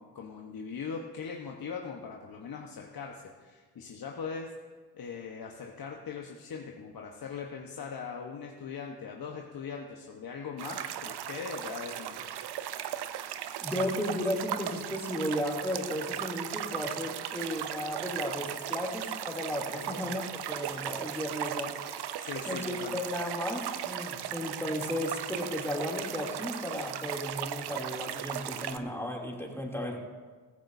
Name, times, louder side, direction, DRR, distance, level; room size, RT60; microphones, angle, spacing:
voice 1, 0.0-4.5 4.9-12.3 19.7-19.9 22.2-23.0, left 6 dB, 55° left, 1 dB, 1.2 m, -40 dB
sound 1, 10.6-28.8, right 10 dB, 65° right, 0.7 m, -37 dB
voice 2, 13.6-22.0 22.5-30.0, left 1 dB, 5° left, -1 dB, 2.9 m, -34 dB
15.0 x 15.0 x 2.7 m, 1.4 s
hypercardioid pair, 50°, 42 cm